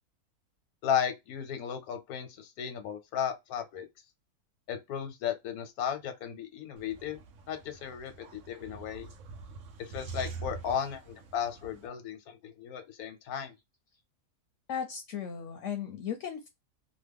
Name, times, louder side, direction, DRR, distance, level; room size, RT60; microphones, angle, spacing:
voice 1, 0.8-3.9 4.7-7.2 7.5-9.1 9.8-13.5, left 8 dB, 90° left, 1.2 m, -35 dB
sound 1, 6.8-11.9, right 4 dB, 65° right, 0.9 m, -45 dB
voice 2, 14.7-16.5, left 8 dB, 65° left, 0.8 m, -36 dB
2.9 x 2.1 x 3.4 m
omnidirectional pair, 1.5 m